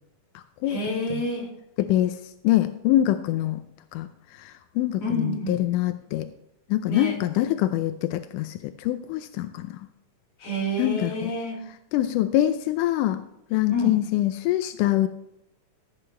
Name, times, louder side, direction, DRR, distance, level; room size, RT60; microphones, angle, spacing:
voice 1, 0.7-1.5 5.0-5.6 6.9-7.2 10.4-11.7 13.7-14.0, left 1 dB, 55° left, -2 dB, 3.8 m, -28 dB
voice 2, 1.8-2.2 2.4-3.6 3.9-4.1 4.4-6.3 6.7-9.7 10.8-11.3 11.9-13.2 13.5-15.1, left 14 dB, 90° left, 9 dB, 2.2 m, -24 dB
15.5 x 8.8 x 3.3 m, 0.83 s
omnidirectional pair, 3.6 m